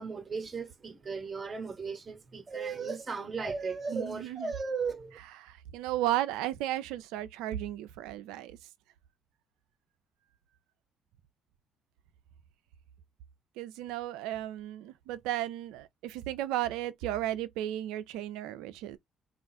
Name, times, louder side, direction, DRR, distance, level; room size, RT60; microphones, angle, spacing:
voice 1, 0.0-5.2, right 5 dB, 40° right, 0.8 m, -36 dB
voice 2, 3.9-4.5 5.4-8.6 13.6-19.0, right 13 dB, 80° right, 0.3 m, -34 dB
2.4 x 2.3 x 4.0 m
hypercardioid pair, 55°, 0 cm